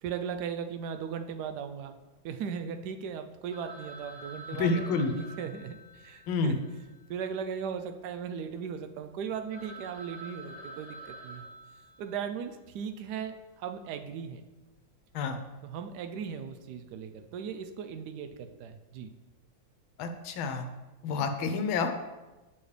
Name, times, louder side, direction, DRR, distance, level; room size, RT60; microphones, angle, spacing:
voice 1, 0.0-2.0 2.2-6.6 7.1-11.5 12.0-14.4 15.6-19.1, right 7 dB, 70° right, 8 dB, 1.1 m, -37 dB
Telephone, 3.5-7.9 8.1-8.2 8.8-8.9 9.2-9.3 9.5-12.5, right 2 dB, 55° right, 2.9 m, -48 dB
voice 2, 4.5-5.1 6.3-6.6 15.1-15.4 20.0-20.7 21.0-21.9, left 4 dB, 85° left, 7 dB, 1.6 m, -29 dB
8.1 x 7.2 x 3.3 m, 1.1 s
omnidirectional pair, 2.2 m